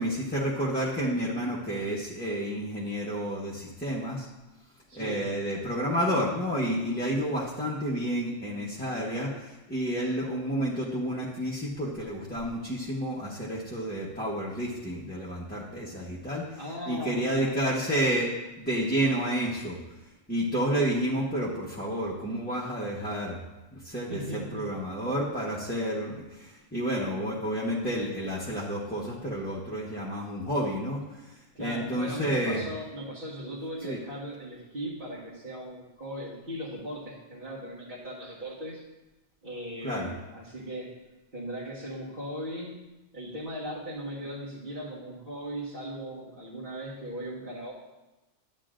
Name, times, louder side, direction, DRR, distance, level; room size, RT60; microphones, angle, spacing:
voice 1, 0.0-4.3 4.9-16.6 16.9-18.3 18.6-19.8 20.3-23.4 23.7-32.6 33.8-34.0 39.8-40.1, equal, 10° left, -7 dB, 1.0 m, -30 dB
voice 2, 4.9-5.3 16.6-17.6 24.1-24.7 31.6-38.8 39.4-40.9 41.3-42.9 43.1-47.7, equal, 45° right, -7 dB, 1.7 m, -38 dB
12.0 x 8.6 x 2.5 m, 1.1 s
omnidirectional pair, 1.2 m